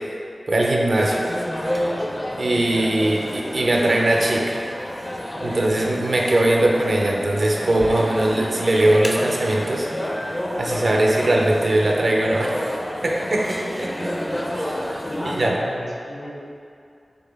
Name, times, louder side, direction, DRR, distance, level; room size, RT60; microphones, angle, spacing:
voice 1, 0.5-1.2 2.4-4.7 5.4-9.9 10.5-12.6 13.0-14.1 14.6-14.8 15.2-15.6, right 1 dB, 65° right, -1 dB, 0.5 m, -20 dB
sound 1, 1.0-15.5, equal, 15° left, 0.4 m, -29 dB
voice 2, 15.0-16.3, left 1 dB, 55° left, -3 dB, 0.7 m, -34 dB
4.1 x 3.0 x 3.4 m, 2.5 s
wide cardioid pair, 65°, 0 cm